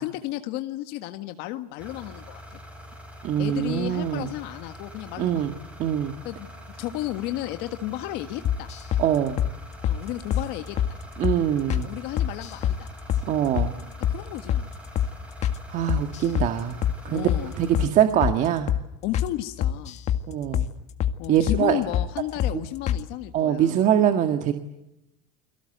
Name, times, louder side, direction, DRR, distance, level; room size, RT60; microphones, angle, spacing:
voice 1, 0.0-2.6 3.4-5.4 6.2-8.7 9.9-11.0 11.8-12.9 14.1-14.7 17.1-17.6 19.0-20.0 21.2-23.8, left 15 dB, 55° left, 8 dB, 1.6 m, -33 dB
sound 1, 1.8-17.9, equal, 5° right, 5.3 m, -44 dB
voice 2, 3.2-4.3 5.2-5.5 5.8-6.1 9.0-9.4 11.2-11.9 13.2-13.8 15.7-17.3 17.6-18.7 20.3-20.7 21.3-21.8 22.5-22.6 23.3-24.5, right 10 dB, 40° right, 7 dB, 1.8 m, -23 dB
sound 2, 8.4-9.1 9.4-9.5 9.8-10.0 10.3-10.5 10.8-10.9 11.2-11.4 11.7-11.9 12.2-12.8 13.1-13.3 13.6-13.7 14.0-14.2 14.5-14.7 15.0-15.1 15.4-15.6 15.9-16.5 16.8-17.0 17.3-17.4 17.7-17.9 18.2-18.4 18.7-18.8 19.1-19.3 19.6-20.2 20.5-20.7 21.0-21.2 21.5-21.6 21.9-22.1 22.4-22.6 22.9-23.0, left 10 dB, 35° left, 1.9 m, -24 dB
30.0 x 23.5 x 8.0 m, 0.91 s
supercardioid pair, 145°, 20 cm